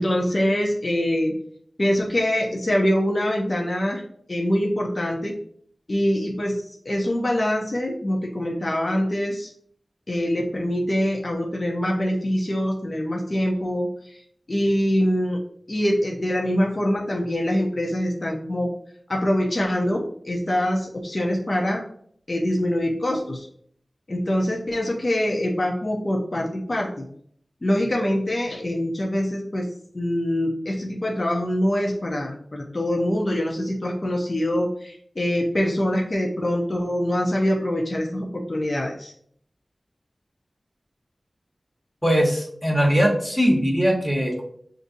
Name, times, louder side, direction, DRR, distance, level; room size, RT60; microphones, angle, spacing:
voice 1, 0.0-1.3 1.8-4.0 4.3-5.3 5.9-9.5 10.1-14.2 14.5-15.4 15.7-18.7 19.1-21.8 22.3-23.5 24.1-27.0 27.6-29.7 29.9-39.1, equal, 50° left, -1 dB, 0.7 m, -24 dB
voice 2, 42.0-44.4, equal, ahead, -2 dB, 1.1 m, -20 dB
6.6 x 2.6 x 2.6 m, 0.64 s
wide cardioid pair, 55°, 0 cm